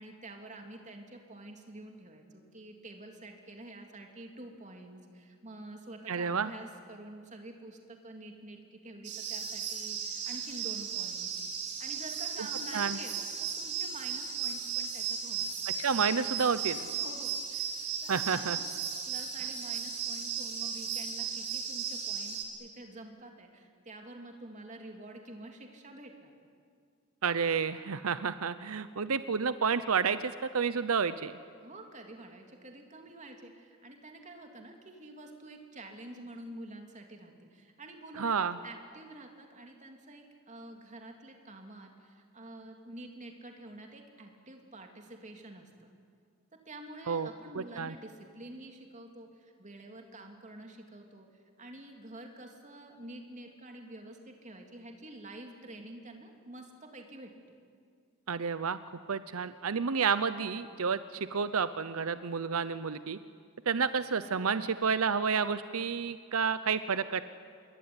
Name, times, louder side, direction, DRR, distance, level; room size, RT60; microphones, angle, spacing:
voice 1, 0.0-11.3 11.8-15.5 16.9-18.7 19.0-26.3 31.6-45.9 46.5-51.3 51.6-57.3, right 1 dB, 35° right, 3 dB, 3.2 m, -48 dB
voice 2, 6.1-6.5 12.7-13.0 15.8-16.9 18.1-18.6 27.2-31.3 38.2-38.6 47.1-47.3 47.5-47.9 58.3-58.8 59.1-63.2 63.7-67.2, right 6 dB, 85° right, 13 dB, 0.7 m, -30 dB
sound 1, 9.0-22.4, right 7 dB, 50° right, 4.3 m, -36 dB
27.0 x 22.5 x 9.7 m, 2.2 s
head